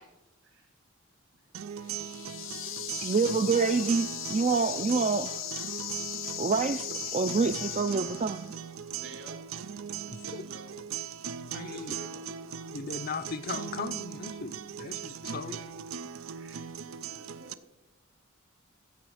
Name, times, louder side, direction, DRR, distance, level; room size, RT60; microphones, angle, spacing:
sound 1, 1.5-17.5, right 8 dB, 85° right, 0.5 m, -39 dB
sound 2, 1.8-8.6, left 11 dB, 75° left, 1.0 m, -38 dB
voice 1, 3.0-5.4 6.4-8.5, right 4 dB, 35° right, 0.4 m, -27 dB
voice 2, 8.9-9.4 9.8-10.8 11.7-12.2 14.8-15.5 16.3-17.6, right 2 dB, 70° right, 4.2 m, -51 dB
voice 3, 10.1-10.4 11.5-12.0 12.7-15.6, left 4 dB, 45° left, 0.6 m, -38 dB
15.0 x 8.6 x 4.9 m
head